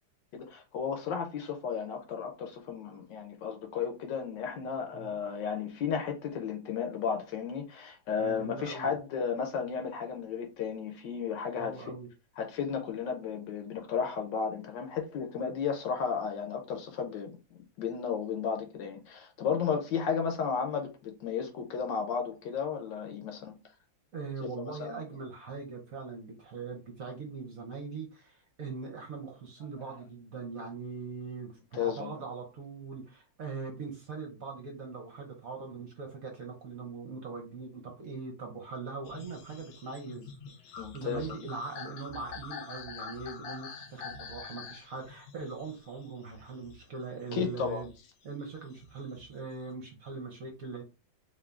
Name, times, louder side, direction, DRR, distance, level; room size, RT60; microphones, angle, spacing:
voice 1, 0.3-11.8 12.4-17.4 17.8-23.6 24.6-25.0 31.7-32.1 40.8-41.4 47.3-47.8, left 6 dB, 70° left, 1.4 m, -33 dB
voice 2, 8.2-8.9 11.6-12.1 24.1-40.3 40.6-47.9 48.2-50.8, right 4 dB, 55° right, 1.1 m, -41 dB
sound 1, 39.1-47.0 47.5-49.7, left 5 dB, 90° left, 1.5 m, -46 dB
3.8 x 2.7 x 3.4 m
omnidirectional pair, 2.1 m